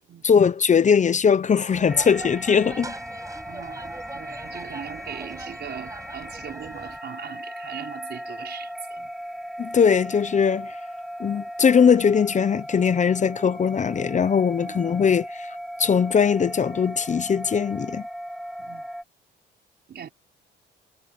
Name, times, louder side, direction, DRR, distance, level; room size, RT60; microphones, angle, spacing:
voice 1, 0.2-2.9 9.6-10.8 11.2-18.0, left 6 dB, 35° left, 0.8 m, -20 dB
sound 1, 1.7-7.0, right 2 dB, 15° right, 6.0 m, -41 dB
sound 2, 1.9-19.0, equal, ahead, 2.3 m, -37 dB
voice 2, 3.4-9.1 14.6-14.9 18.6-18.9 19.9-20.1, right 8 dB, 55° right, 4.9 m, -39 dB
cardioid pair, 90°, 20 cm